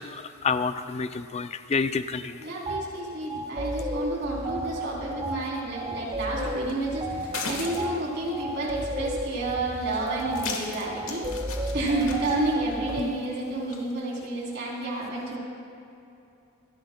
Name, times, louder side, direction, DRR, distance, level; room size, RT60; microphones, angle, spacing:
voice 1, 0.0-2.4 13.0-13.1, left 5 dB, 30° left, 11 dB, 0.3 m, -29 dB
voice 2, 2.4-11.2 11.7-15.4, right 2 dB, 50° right, -4 dB, 3.2 m, -30 dB
sound 1, 2.7-2.8 3.3-13.0, right 1 dB, 25° right, 0.9 m, -33 dB
sound 2, 6.3-13.9, left 4 dB, 65° left, 1.4 m, -40 dB
27.5 x 10.5 x 2.2 m, 2.8 s
head